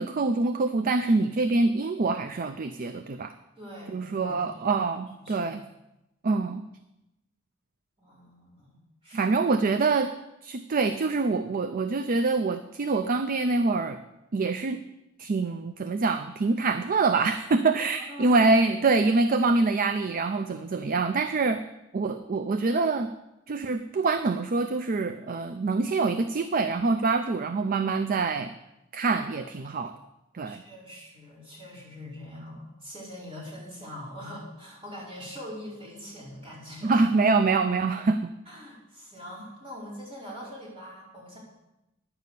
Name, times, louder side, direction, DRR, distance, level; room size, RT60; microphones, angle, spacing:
voice 1, 0.0-3.3 3.9-5.6 6.2-6.6 9.1-10.1 10.4-14.0 14.3-14.8 15.2-21.6 21.9-23.1 23.5-28.5 28.9-29.9 30.3-30.6 36.8-38.3, right 3 dB, 45° right, 9 dB, 0.5 m, -25 dB
voice 2, 3.6-4.9 5.2-5.5 8.0-9.4 17.9-18.3 30.4-37.0 38.5-41.4, equal, 25° right, -6 dB, 5.0 m, -43 dB
10.5 x 6.9 x 8.2 m, 0.93 s
head